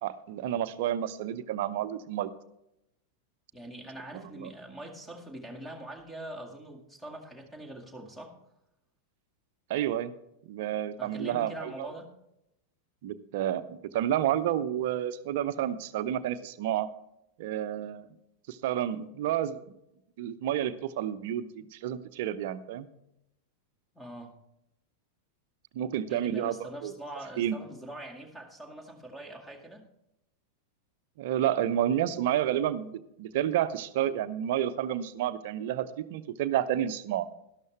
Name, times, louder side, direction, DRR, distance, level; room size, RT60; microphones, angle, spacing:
voice 1, 0.0-2.3 4.1-4.5 9.7-10.1 10.5-11.9 13.0-16.9 17.4-18.1 18.5-19.6 20.2-22.9 25.7-26.6 26.8-26.9 27.4-27.6 31.2-37.3, right 11 dB, 50° right, 14 dB, 0.6 m, -30 dB
voice 2, 3.5-8.4 11.0-12.1 23.9-24.3 26.1-29.8, right 1 dB, 5° left, 4 dB, 2.0 m, -43 dB
12.5 x 12.0 x 3.3 m, 0.84 s
figure-of-eight pair, 90°, 0 cm